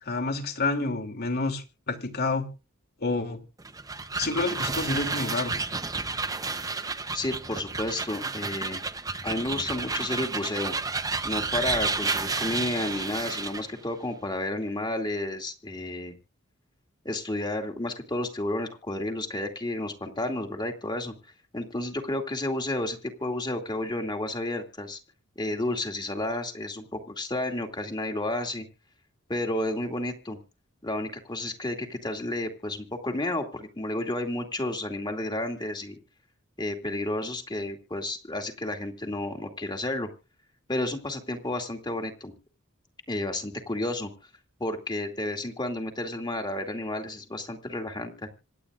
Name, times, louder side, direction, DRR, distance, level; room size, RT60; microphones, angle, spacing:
voice 1, 0.0-2.5 3.0-3.4 4.2-5.5, left 3 dB, 50° left, 5 dB, 2.9 m, -29 dB
sound 1, 3.6-13.7, right 3 dB, 15° right, 0.9 m, -31 dB
voice 2, 7.1-8.8 9.2-10.7 11.2-16.1 17.0-21.1 21.5-25.0 25.4-28.6 29.3-30.4 30.8-36.0 36.6-40.1 40.7-42.3 43.1-44.1 44.6-48.3, left 1 dB, 20° left, 4 dB, 2.4 m, -31 dB
26.5 x 9.3 x 2.5 m, 0.32 s
head